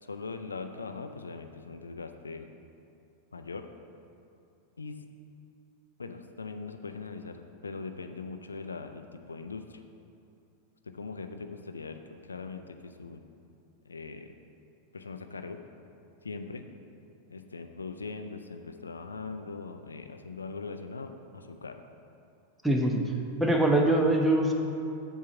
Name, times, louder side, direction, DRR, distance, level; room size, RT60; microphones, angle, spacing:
voice 1, 0.0-2.5 3.3-3.7 4.8-5.0 6.0-9.8 10.9-13.2 13.9-14.3 14.9-15.6 16.2-16.7 17.3-21.8, left 4 dB, 75° left, 7 dB, 0.4 m, -41 dB
voice 2, 22.6-23.1 23.4-24.5, right 1 dB, 5° right, 1 dB, 0.9 m, -23 dB
7.4 x 4.6 x 7.1 m, 2.6 s
figure-of-eight pair, 90°, 0 cm